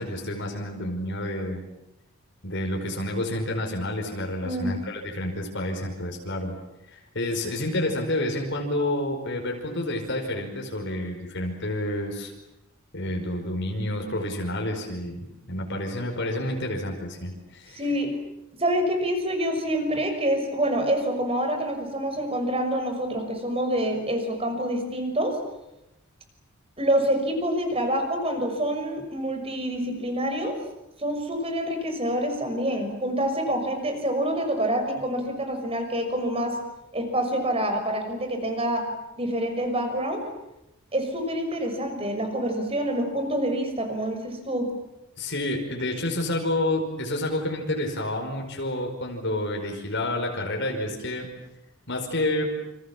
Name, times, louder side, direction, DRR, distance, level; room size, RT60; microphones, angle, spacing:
voice 1, 0.0-1.6 2.4-6.6 6.9-12.3 12.9-17.8 45.2-51.3 51.9-52.5, left 1 dB, 55° left, 1 dB, 5.2 m, -29 dB
voice 2, 4.4-4.8 17.7-18.1 18.6-25.4 26.8-30.6 31.0-36.6 36.9-38.8 39.2-40.2 40.9-44.7, right 1 dB, 25° right, 6 dB, 6.2 m, -27 dB
29.0 x 27.5 x 7.4 m, 0.90 s
head